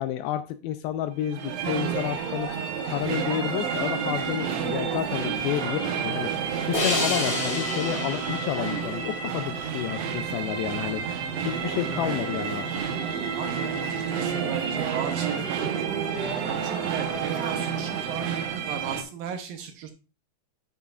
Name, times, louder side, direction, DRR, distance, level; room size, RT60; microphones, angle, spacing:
voice 1, 0.0-2.5 2.9-6.3 6.7-11.0 11.4-12.7, left 12 dB, 80° left, 10 dB, 2.2 m, -30 dB
sound 1, 1.2-19.0, right 7 dB, 90° right, 1.4 m, -30 dB
Bowed string instrument, 1.8-8.1, left 4 dB, 60° left, 3.1 m, -45 dB
sound 2, 6.7-10.0, left 2 dB, 40° left, 3.1 m, -30 dB
voice 2, 13.4-16.1 16.4-19.9, right 7 dB, 75° right, 6 dB, 2.3 m, -36 dB
9.9 x 7.1 x 2.4 m, 0.32 s
omnidirectional pair, 4.6 m